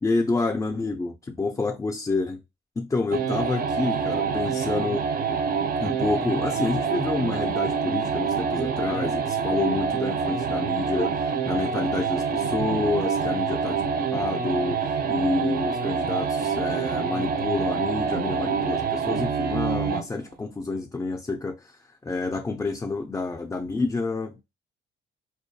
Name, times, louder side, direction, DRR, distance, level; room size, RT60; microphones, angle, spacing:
voice 1, 0.0-2.4 2.8-5.1 5.8-13.8 14.1-24.4, left 3 dB, 15° left, 0.3 m, -28 dB
sound 1, 3.1-20.1, right 6 dB, 50° right, 0.4 m, -26 dB
2.2 x 2.2 x 2.6 m
cardioid pair, 90°, 20 cm